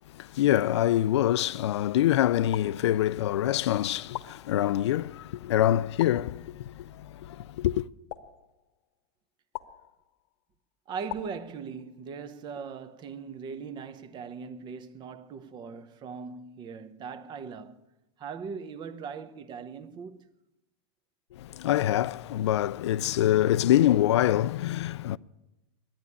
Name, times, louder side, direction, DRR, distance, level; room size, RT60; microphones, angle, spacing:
voice 1, 0.2-6.8 7.2-7.9 21.4-25.2, left 12 dB, 85° left, 0.4 m, -25 dB
sound 1, 2.5-3.4 4.1-5.0 6.0-6.8 8.1-9.0 9.5-10.3 11.1-12.1, left 15 dB, 60° left, 1.0 m, -43 dB
voice 2, 10.9-17.8 18.2-20.3, right 6 dB, 30° right, 0.9 m, -40 dB
10.5 x 9.5 x 9.8 m
supercardioid pair, 125°, 14 cm